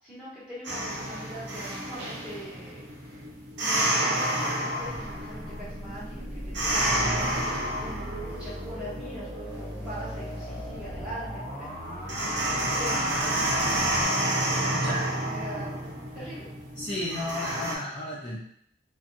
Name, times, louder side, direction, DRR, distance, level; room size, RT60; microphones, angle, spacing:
voice 1, 0.0-2.8 3.6-11.7 12.7-13.6 15.2-15.8 16.1-16.5, equal, 5° right, -13 dB, 1.4 m, -42 dB
sound 1, 0.6-17.7, right 1 dB, 85° right, 0.6 m, -30 dB
sound 2, 4.8-14.0, equal, 55° right, 1.1 m, -38 dB
voice 2, 14.7-15.1 16.8-18.4, left 1 dB, 30° left, -9 dB, 0.5 m, -33 dB
2.6 x 2.2 x 2.6 m, 0.69 s
head